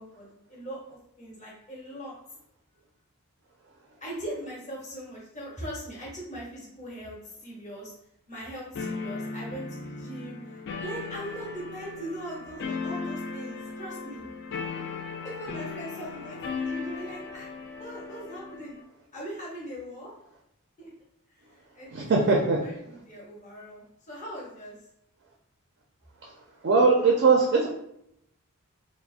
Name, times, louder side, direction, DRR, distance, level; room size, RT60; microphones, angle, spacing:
voice 1, 0.0-2.1 4.0-7.9 8.3-14.3 15.2-17.5 17.8-18.8 19.1-20.1 20.8-20.9 21.7-24.8, right 1 dB, 35° left, -5 dB, 0.9 m, -40 dB
sound 1, 8.7-18.8, left 4 dB, 50° left, 0.3 m, -37 dB
voice 2, 21.9-22.6 26.6-27.7, right 4 dB, 50° right, 0 dB, 0.4 m, -20 dB
3.4 x 2.0 x 2.4 m, 0.75 s
head